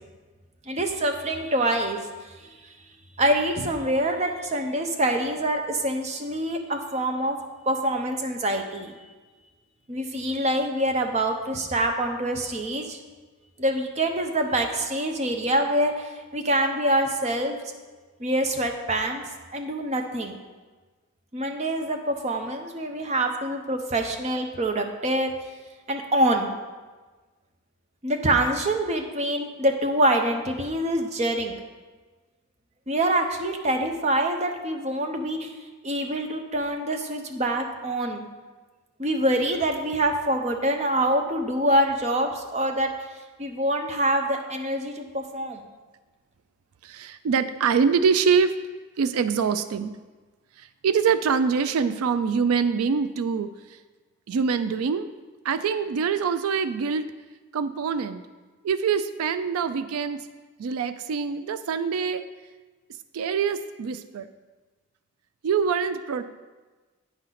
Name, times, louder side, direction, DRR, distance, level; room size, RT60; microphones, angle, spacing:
voice 1, 0.7-2.0 3.2-7.4 7.7-9.0 9.9-13.0 13.6-17.6 18.2-19.2 19.5-20.4 21.3-25.3 25.9-26.5 28.0-31.6 32.9-35.5 35.8-38.2 39.0-42.9 43.4-45.6, right 1 dB, 30° right, 4 dB, 0.7 m, -25 dB
voice 2, 46.8-48.5 49.0-50.0 50.6-53.8 54.3-55.1 55.4-57.1 57.5-58.2 58.6-60.3 60.6-62.3 63.1-64.3 65.4-66.2, right 6 dB, 80° right, 12 dB, 0.4 m, -24 dB
9.1 x 3.9 x 5.7 m, 1.3 s
head